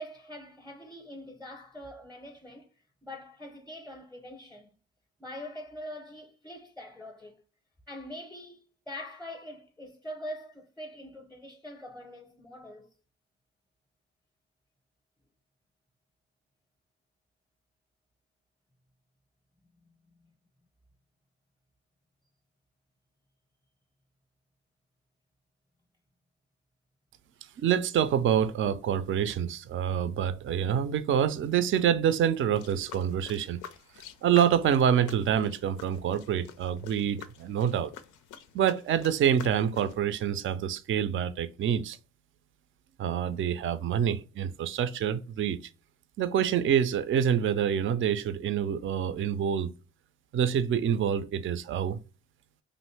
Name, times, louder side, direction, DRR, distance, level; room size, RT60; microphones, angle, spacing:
voice 1, 0.0-2.7 3.0-4.7 5.2-7.4 7.9-12.9, equal, 5° left, 0.6 m, -43 dB
voice 2, 27.6-33.6 34.2-37.9 38.5-42.0 43.0-45.6 46.2-49.7 50.3-52.0, right 9 dB, 45° right, 0.4 m, -26 dB
sound 1, 32.5-40.0, left 9 dB, 90° left, 0.5 m, -48 dB
3.0 x 2.5 x 3.2 m
cardioid pair, 90°, 30 cm